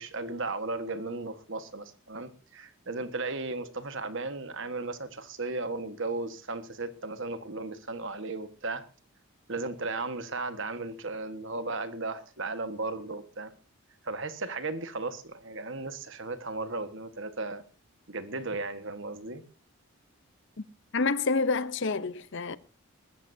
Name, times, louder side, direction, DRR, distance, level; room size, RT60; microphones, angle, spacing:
voice 1, 0.0-8.8 9.5-13.5 14.0-17.6 18.1-19.4, right 3 dB, 55° right, 1.5 m, -35 dB
voice 2, 20.9-22.6, left 4 dB, 55° left, 0.7 m, -28 dB
20.5 x 14.5 x 2.7 m
head